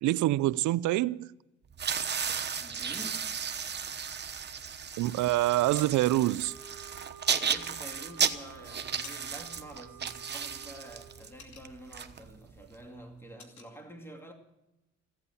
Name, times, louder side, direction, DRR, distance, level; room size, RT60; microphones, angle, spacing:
voice 1, 0.0-1.3 5.0-6.5, right 16 dB, 75° right, 0.5 m, -26 dB
sound 1, 1.7-12.7, right 7 dB, 35° right, 1.0 m, -34 dB
voice 2, 2.6-3.3 7.4-14.3, right 1 dB, 10° left, 2.4 m, -48 dB
sound 2, 5.8-6.1 7.3-8.1 8.6-9.5 9.8-10.0 10.4-12.1 12.5-12.7 12.9-13.7, left 5 dB, 70° left, 2.6 m, -51 dB
sound 3, 6.4-11.3, right 9 dB, 55° right, 2.1 m, -51 dB
15.0 x 8.5 x 9.7 m
cardioid pair, 90°, 30 cm